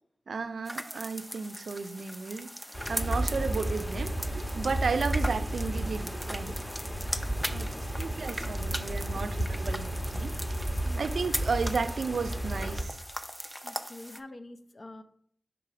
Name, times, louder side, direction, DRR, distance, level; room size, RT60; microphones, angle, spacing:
voice 1, 0.3-2.5 2.9-6.5 7.5-10.3 11.0-13.0, right 4 dB, 85° right, 0.3 m, -33 dB
sound 1, 0.6-14.2, equal, ahead, 0.5 m, -40 dB
sound 2, 2.6-9.7, left 1 dB, 80° left, 1.9 m, -56 dB
sound 3, 2.7-12.8, right 1 dB, 20° left, 1.4 m, -33 dB
voice 2, 7.3-7.8 8.4-8.5 9.7-9.8 10.8-11.0 13.6-15.0, left 2 dB, 55° left, 0.6 m, -46 dB
4.7 x 3.8 x 5.7 m
cardioid pair, 40°, 0 cm